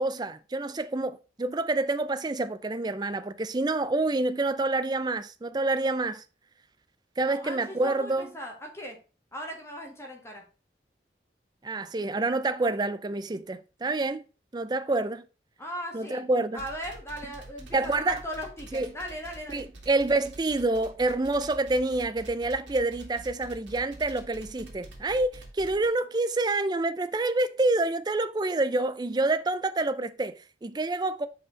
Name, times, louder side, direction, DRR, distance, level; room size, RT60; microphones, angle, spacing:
voice 1, 0.0-6.2 7.2-8.3 11.6-14.2 14.5-15.2 15.9-16.6 17.7-18.2 18.7-18.9 19.5-31.3, right 2 dB, 25° right, 0.4 m, -27 dB
voice 2, 7.2-9.0 9.3-10.4 15.6-16.3 16.5-19.6, equal, 15° left, 1.5 m, -38 dB
sound 1, 16.6-25.9, right 2 dB, 90° right, 2.2 m, -46 dB
5.1 x 4.8 x 5.0 m
head